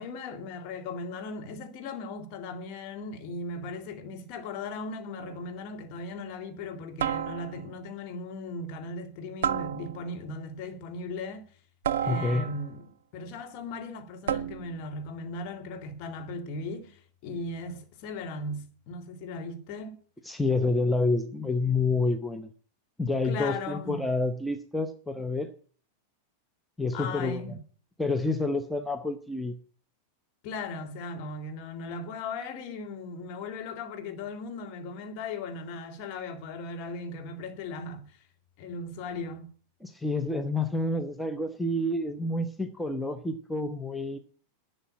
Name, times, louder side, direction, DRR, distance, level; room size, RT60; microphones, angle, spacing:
voice 1, 0.0-11.5 12.0-20.0 23.2-24.1 26.9-27.6 30.4-38.2 38.6-39.5, left 3 dB, 45° left, 2.2 m, -38 dB
sound 1, 5.2-5.5 7.0-7.8 9.4-10.3 11.8-12.8 14.3-14.9, right 9 dB, 60° right, 0.5 m, -31 dB
voice 2, 12.0-12.5 20.2-22.5 23.0-25.5 26.8-27.4 28.0-29.6 39.8-44.2, left 2 dB, 5° left, 0.8 m, -28 dB
11.0 x 6.8 x 8.4 m
figure-of-eight pair, 90°, 0 cm